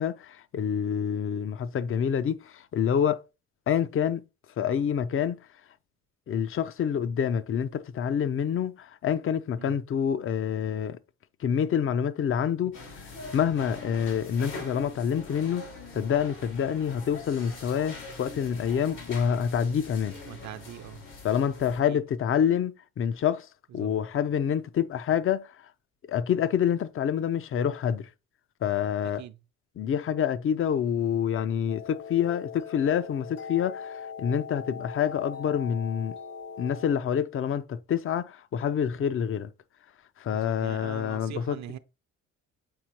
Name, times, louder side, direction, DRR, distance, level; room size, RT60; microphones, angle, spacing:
voice 1, 0.0-3.2 3.7-4.2 4.6-5.4 6.3-11.0 11.4-15.7 15.9-20.2 21.2-23.5 23.7-25.5 26.1-28.1 28.6-29.2 29.8-36.2 36.6-39.5 40.2-41.8, left 8 dB, 45° left, 0.5 m, -27 dB
sound 1, 12.7-21.8, left 3 dB, 85° left, 3.1 m, -43 dB
voice 2, 20.3-21.0 21.9-22.0 23.7-23.9 29.2-29.4 40.3-41.8, right 12 dB, 65° right, 0.6 m, -42 dB
sound 2, 31.7-36.9, left 6 dB, 65° left, 1.6 m, -40 dB
7.7 x 4.4 x 2.9 m
cardioid pair, 90°, 30 cm